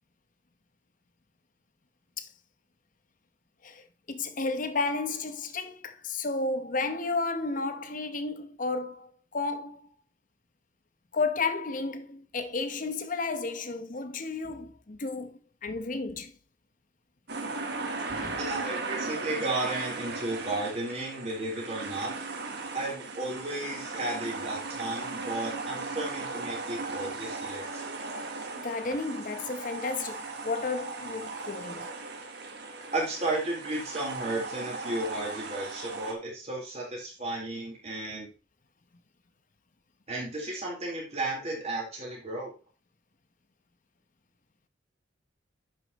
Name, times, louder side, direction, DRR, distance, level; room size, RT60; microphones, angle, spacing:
voice 1, 3.6-9.9 11.1-16.3 18.1-18.4 28.5-31.9, left 3 dB, 45° left, 0.9 m, -32 dB
sound 1, 17.3-36.1, right 3 dB, 60° right, 1.2 m, -37 dB
voice 2, 18.4-22.1 22.7-27.8 32.9-38.3 40.1-42.5, right 2 dB, 35° right, 3.9 m, -33 dB
10.5 x 5.7 x 3.0 m
head